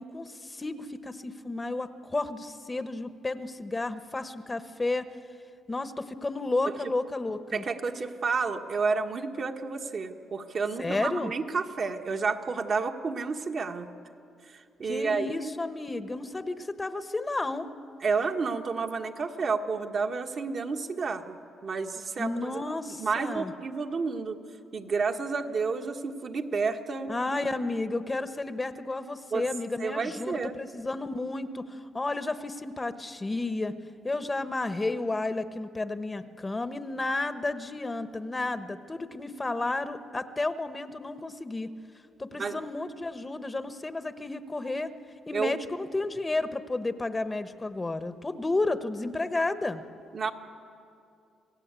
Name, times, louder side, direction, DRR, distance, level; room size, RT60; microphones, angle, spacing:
voice 1, 0.0-5.0 5.7-7.6 10.8-11.3 14.8-17.7 22.2-23.5 27.1-33.7 34.0-41.7 42.2-44.9 45.3-49.8, left 2 dB, 20° left, 10 dB, 1.0 m, -32 dB
voice 2, 7.5-13.9 14.5-15.5 18.0-22.6 22.9-24.4 24.7-27.1 29.3-29.5 29.8-30.6 42.3-42.6 45.3-45.6 50.1-50.3, right 4 dB, 50° right, 4 dB, 1.5 m, -30 dB
27.5 x 17.0 x 8.3 m, 2.5 s
cardioid pair, 90°, 0 cm